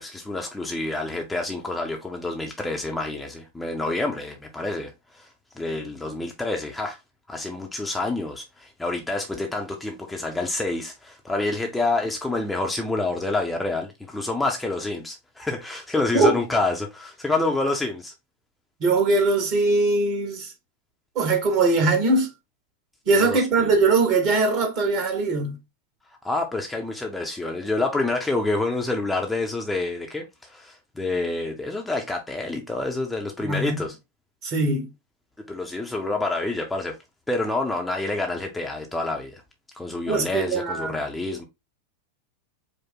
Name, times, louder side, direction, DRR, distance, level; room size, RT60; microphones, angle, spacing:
voice 1, 0.0-5.3 5.6-7.0 7.3-18.1 23.2-23.4 26.2-34.0 35.5-37.0 37.3-39.4 39.7-41.4, left 2 dB, 5° left, 0.7 m, -28 dB
voice 2, 18.8-20.5 21.1-22.3 23.1-25.6 33.4-33.8 34.4-34.9 40.1-41.0, right 3 dB, 40° right, 1.6 m, -21 dB
5.0 x 2.2 x 3.9 m
figure-of-eight pair, 90°, 0 cm